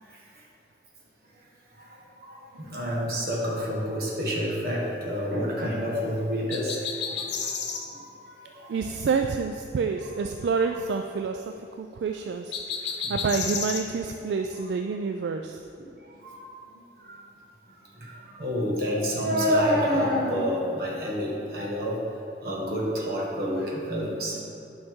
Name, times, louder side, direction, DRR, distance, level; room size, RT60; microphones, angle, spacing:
voice 1, 1.8-8.7 13.0-13.1 16.1-16.4 17.0-17.2 18.0-22.0 22.4-24.4, equal, 55° right, -3 dB, 1.4 m, -28 dB
sound 1, 6.5-7.9 12.5-13.8, left 6 dB, 80° left, 0.8 m, -31 dB
voice 2, 8.7-15.7, right 5 dB, 75° right, 5 dB, 0.3 m, -28 dB
9.6 x 5.6 x 3.6 m, 2.8 s
head